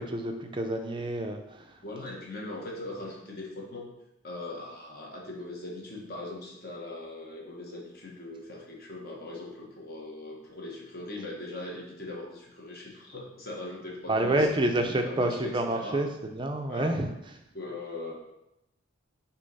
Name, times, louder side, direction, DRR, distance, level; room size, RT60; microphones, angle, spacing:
voice 1, 0.0-1.8 14.1-17.1, right 1 dB, 25° right, 4 dB, 0.5 m, -28 dB
voice 2, 1.8-3.9 4.2-16.0 16.7-17.0 17.5-18.1, left 2 dB, 45° left, -2 dB, 1.3 m, -40 dB
6.6 x 3.0 x 5.4 m, 0.88 s
head